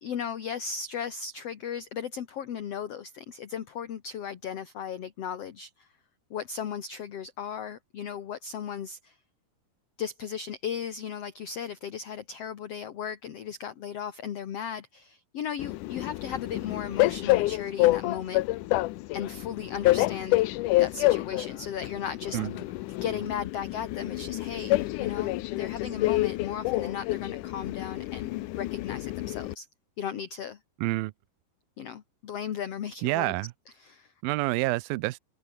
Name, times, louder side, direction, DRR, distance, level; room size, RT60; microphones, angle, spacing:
voice 1, 0.0-5.9 6.3-9.2 10.0-18.4 19.1-20.4 20.7-22.4 23.0-29.7 30.0-30.6 31.8-33.3 33.8-34.1, left 8 dB, 50° left, 2.1 m, -36 dB
Train, 15.6-29.5, left 18 dB, 80° left, 1.8 m, -28 dB
voice 2, 30.8-31.1 33.0-33.5 34.2-35.2, right 20 dB, 80° right, 2.3 m, -28 dB
omnidirectional pair, 4.4 m